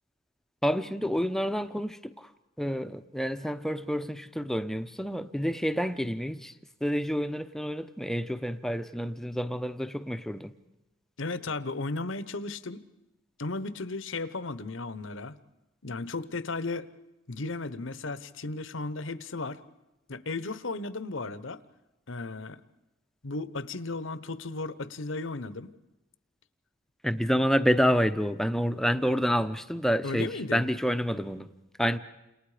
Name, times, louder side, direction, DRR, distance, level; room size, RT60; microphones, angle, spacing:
voice 1, 0.6-2.3 2.6-6.5 6.8-10.5 27.0-31.5 31.8-32.0, equal, ahead, 0.8 m, -28 dB
voice 2, 11.2-12.8 13.4-15.3 15.8-16.9 17.3-19.6 20.1-21.6 22.1-22.6 23.2-25.7 30.0-30.6, left 3 dB, 70° left, 1.0 m, -35 dB
29.5 x 28.0 x 5.0 m
head